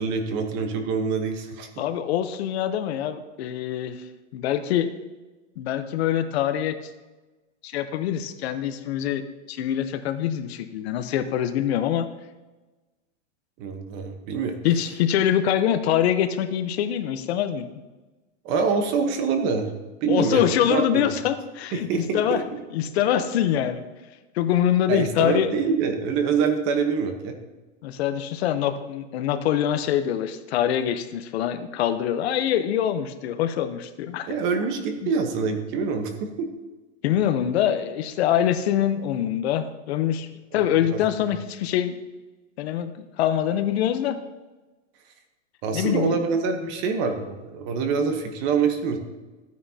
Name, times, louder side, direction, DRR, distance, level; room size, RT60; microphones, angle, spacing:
voice 1, 0.0-1.7 13.6-14.6 18.4-19.7 20.0-21.1 21.7-22.4 24.9-27.3 34.3-36.5 40.5-41.0 45.6-49.0, right 5 dB, 30° right, 6 dB, 1.0 m, -25 dB
voice 2, 1.8-4.0 4.3-4.9 5.6-6.7 7.6-12.1 14.6-17.7 20.1-21.9 22.1-22.4 22.7-23.8 24.3-25.5 27.8-34.4 35.0-35.1 37.0-40.3 40.5-42.0 42.6-44.2 45.7-46.2, left 10 dB, 55° left, 10 dB, 0.8 m, -24 dB
14.0 x 9.4 x 2.8 m, 1.2 s
supercardioid pair, 160°, 38 cm